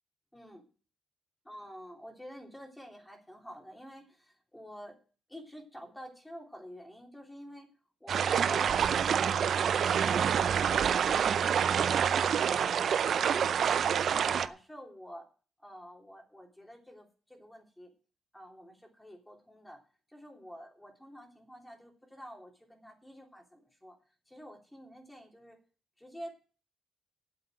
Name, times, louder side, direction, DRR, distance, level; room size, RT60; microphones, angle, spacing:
voice 1, 0.3-0.6 1.4-5.0 5.3-7.7 8.0-10.9 11.2-13.8 14.2-15.3 15.6-17.9 18.3-19.8 20.1-24.0 24.2-25.6 26.0-26.6, equal, 5° left, 1 dB, 3.1 m, -49 dB
sound 1, 8.1-14.5, right 8 dB, 60° right, 0.6 m, -27 dB
8.4 x 7.8 x 9.0 m, 0.38 s
cardioid pair, 90°, 0 cm